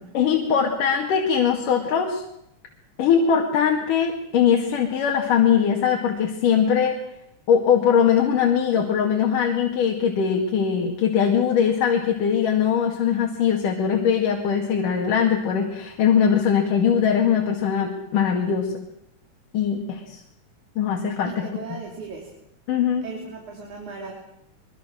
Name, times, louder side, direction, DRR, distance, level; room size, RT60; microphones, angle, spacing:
voice 1, 0.1-2.2 3.0-7.0 7.5-18.7 19.5-20.2 20.8-21.4 21.7-21.8 22.7-23.1, left 7 dB, 90° left, 1 dB, 3.7 m, -21 dB
voice 2, 21.2-22.3 23.0-24.1, right 4 dB, 70° right, 0 dB, 4.6 m, -37 dB
24.0 x 23.0 x 6.4 m, 0.78 s
omnidirectional pair, 3.6 m